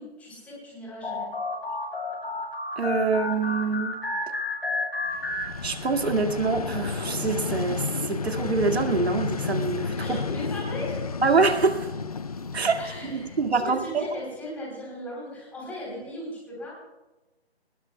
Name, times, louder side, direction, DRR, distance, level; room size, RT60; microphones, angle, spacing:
voice 1, 0.0-1.3 10.0-11.2 12.8-16.7, left 1 dB, 5° left, -4 dB, 3.6 m, -38 dB
sound 1, 1.0-6.1, left 3 dB, 65° left, 6.1 m, -31 dB
voice 2, 2.8-4.0 5.6-10.4 11.2-11.9 12.5-14.0, right 4 dB, 75° right, 5 dB, 2.2 m, -25 dB
Vehicle, 5.1-14.1, left 5 dB, 35° left, 0.5 m, -32 dB
22.0 x 20.0 x 2.3 m, 1.1 s
hypercardioid pair, 165°, 32 cm